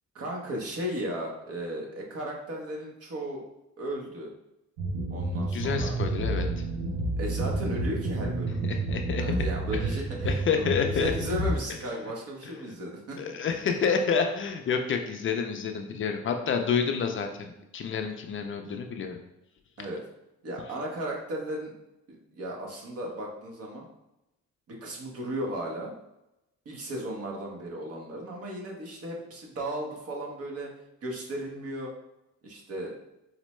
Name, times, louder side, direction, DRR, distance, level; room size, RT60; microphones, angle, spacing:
voice 1, 0.1-3.4 3.8-4.3 5.1-6.0 7.2-8.6 9.2-13.2 13.4-13.6 19.8-20.0 20.4-21.7 22.1-23.8 24.7-25.9 26.6-30.7 31.0-31.9 32.4-32.9, right 1 dB, 50° right, -1 dB, 1.0 m, -35 dB
sound 1, 4.8-11.6, right 2 dB, 80° right, 0.6 m, -30 dB
voice 2, 5.5-6.6 8.6-9.2 10.3-11.1 13.2-19.2, left 6 dB, 45° left, 5 dB, 0.4 m, -29 dB
4.3 x 2.1 x 3.0 m, 0.89 s
cardioid pair, 90°, 30 cm